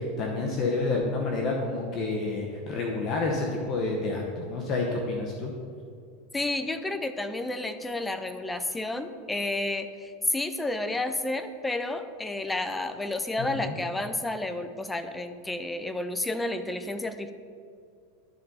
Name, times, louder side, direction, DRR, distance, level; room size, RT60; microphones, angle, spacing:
voice 1, 0.0-5.5 13.4-13.7, left 3 dB, 35° left, 0 dB, 0.9 m, -29 dB
voice 2, 6.3-17.3, left 2 dB, 5° left, 9 dB, 0.4 m, -31 dB
12.0 x 4.2 x 3.9 m, 2.2 s
supercardioid pair, 150°, 0 cm